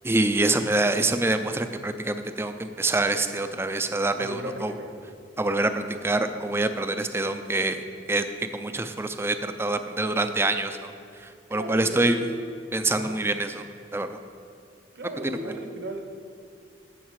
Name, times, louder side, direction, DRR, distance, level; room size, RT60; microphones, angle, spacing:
voice 1, 0.0-4.7 5.4-7.8 8.1-8.3 8.5-10.9 11.2-12.2 12.7-13.6 13.9-14.2, right 2 dB, 15° right, 8 dB, 0.4 m, -25 dB
voice 2, 4.2-4.9 11.5-12.2 13.0-13.2 14.9-16.1, right 1 dB, 55° right, 4 dB, 1.0 m, -35 dB
14.5 x 5.9 x 4.7 m, 2.4 s
head